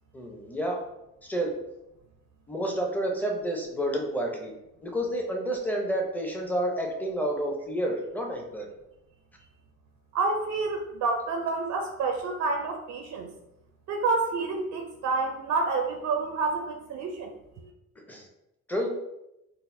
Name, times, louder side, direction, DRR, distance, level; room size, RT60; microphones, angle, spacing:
voice 1, 0.1-0.8 1.2-1.5 2.5-4.5 4.8-8.7 18.1-18.3 18.7-19.0, right 1 dB, 5° left, 1 dB, 0.6 m, -29 dB
voice 2, 10.1-13.3 13.9-17.3, right 3 dB, 70° right, 3 dB, 0.5 m, -28 dB
3.9 x 2.1 x 2.6 m, 0.88 s
cardioid pair, 90°, 30 cm